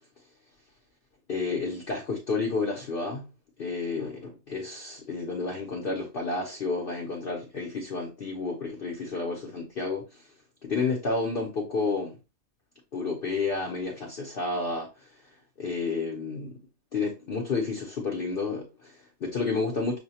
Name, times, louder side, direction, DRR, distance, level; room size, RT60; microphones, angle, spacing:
voice 1, 1.3-3.3 3.6-10.2 10.6-12.2 12.9-15.1 15.6-16.6 16.9-20.0, left 3 dB, 50° left, 0.7 m, -31 dB
6.2 x 2.2 x 2.8 m
omnidirectional pair, 1.5 m